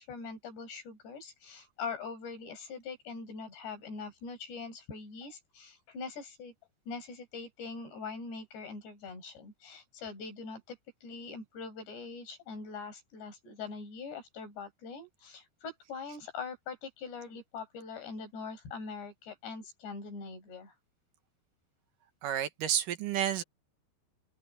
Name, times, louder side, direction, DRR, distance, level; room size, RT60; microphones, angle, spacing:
voice 1, 0.0-6.5 6.9-20.7, left 4 dB, 80° left, 8.1 m, -43 dB
voice 2, 22.2-23.4, right 10 dB, 65° right, 2.4 m, -30 dB
open air
omnidirectional pair, 4.9 m